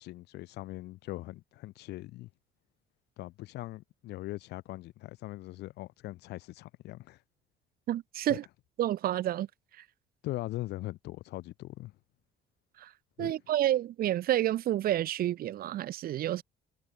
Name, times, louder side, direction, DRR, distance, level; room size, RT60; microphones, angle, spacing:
voice 1, 0.0-2.3 3.2-7.2 8.3-8.4 10.2-11.9 13.2-13.3, left 17 dB, 80° left, 2.7 m, -40 dB
voice 2, 7.9-8.4 8.8-9.5 12.8-12.9 13.2-16.4, right 13 dB, 60° right, 1.1 m, -29 dB
cardioid pair, 110°, 17 cm